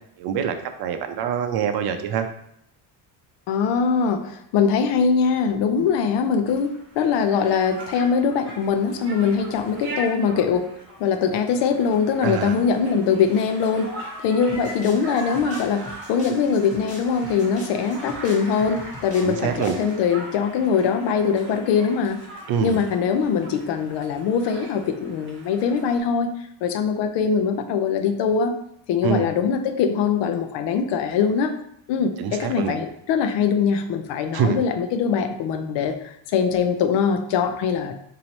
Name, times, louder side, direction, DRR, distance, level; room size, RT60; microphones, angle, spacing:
voice 1, 0.2-2.3 12.2-12.6 19.2-19.8 22.5-22.8 29.0-29.3 32.2-32.7 34.3-34.6, right 8 dB, 55° right, 7 dB, 0.6 m, -25 dB
voice 2, 3.5-10.7 11.0-26.3 26.6-28.5 28.9-31.5 31.9-38.0, left 6 dB, 70° left, 7 dB, 0.6 m, -22 dB
Conversation, 6.5-26.0, right 1 dB, 25° right, 1.0 m, -40 dB
sound 1, 14.5-20.0, left 2 dB, 15° left, 1.0 m, -43 dB
3.0 x 2.7 x 4.1 m, 0.72 s
cardioid pair, 145°, 45 cm